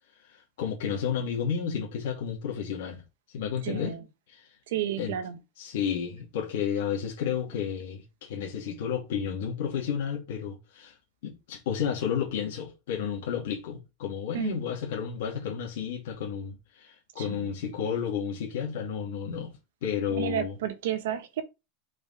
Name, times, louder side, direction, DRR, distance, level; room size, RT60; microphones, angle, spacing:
voice 1, 0.3-3.0 3.3-4.0 4.3-4.5 5.0-5.1 5.6-10.9 11.2-20.5, left 7 dB, 75° left, 2.5 m, -32 dB
voice 2, 3.6-4.0 4.7-5.4 14.3-14.6 17.2-17.5 20.1-21.4, right 11 dB, 85° right, 1.1 m, -32 dB
5.2 x 5.0 x 4.9 m
supercardioid pair, 160°, 0 cm